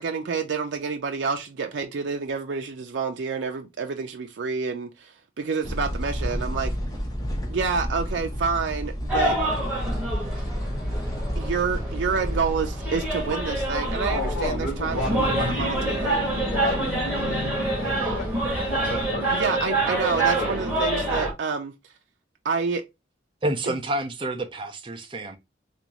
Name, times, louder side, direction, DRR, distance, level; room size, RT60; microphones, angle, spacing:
voice 1, 0.0-6.7 7.5-9.4 11.4-16.3 19.3-21.7 22.4-22.8, right 5 dB, 80° right, 0.4 m, -28 dB
sound 1, 5.6-19.1, equal, 20° left, 0.6 m, -32 dB
sound 2, 9.1-21.3, right 1 dB, 10° right, 1.2 m, -27 dB
voice 2, 14.1-18.3 18.7-19.7, left 1 dB, 60° left, 1.2 m, -33 dB
voice 3, 23.4-25.4, right 1 dB, 25° right, 0.5 m, -29 dB
3.5 x 2.5 x 2.9 m
head